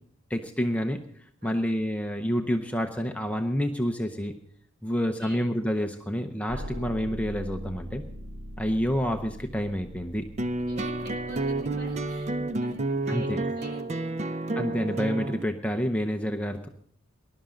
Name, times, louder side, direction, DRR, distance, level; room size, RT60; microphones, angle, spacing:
voice 1, 0.3-1.0 1.4-4.3 4.8-8.0 8.6-10.3 13.1-13.4 14.5-16.7, equal, 5° left, 4 dB, 0.7 m, -28 dB
voice 2, 1.4-1.8 4.8-5.5 10.7-14.5, right 1 dB, 50° right, 2 dB, 5.1 m, -47 dB
sound 1, 6.5-13.4, equal, 85° right, 2.3 m, -42 dB
sound 2, 10.4-15.4, right 2 dB, 35° right, 0.6 m, -30 dB
19.5 x 11.5 x 3.9 m, 0.65 s
head